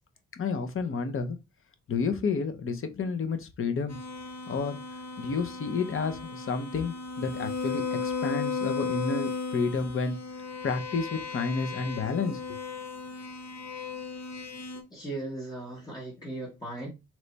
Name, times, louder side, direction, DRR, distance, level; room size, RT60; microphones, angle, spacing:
voice 1, 0.4-1.4 1.9-4.0 4.5-4.8 5.2-10.2 10.6-12.6, left 4 dB, 45° left, 0.6 m, -30 dB
sound 1, 3.9-14.8, left 4 dB, 75° left, 1.0 m, -35 dB
voice 2, 14.9-16.9, right 2 dB, 15° left, 0.8 m, -37 dB
3.3 x 3.0 x 3.9 m
wide cardioid pair, 180°, 29 cm